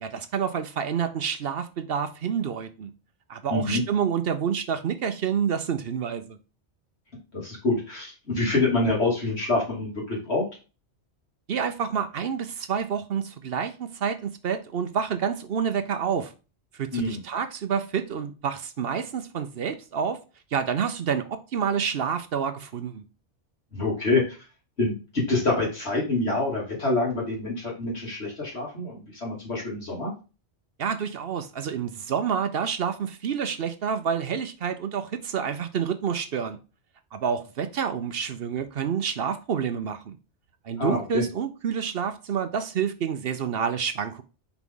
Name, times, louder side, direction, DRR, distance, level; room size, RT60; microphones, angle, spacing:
voice 1, 0.0-2.9 3.3-6.4 11.5-16.3 16.8-20.2 20.5-23.0 30.8-36.6 37.1-40.2 40.6-44.2, right 7 dB, 60° right, 0.8 m, -28 dB
voice 2, 3.5-3.8 7.3-10.4 16.9-17.2 23.7-24.4 24.8-30.1 40.8-41.2, left 2 dB, 70° left, 3.2 m, -26 dB
6.0 x 4.7 x 3.7 m
omnidirectional pair, 1.2 m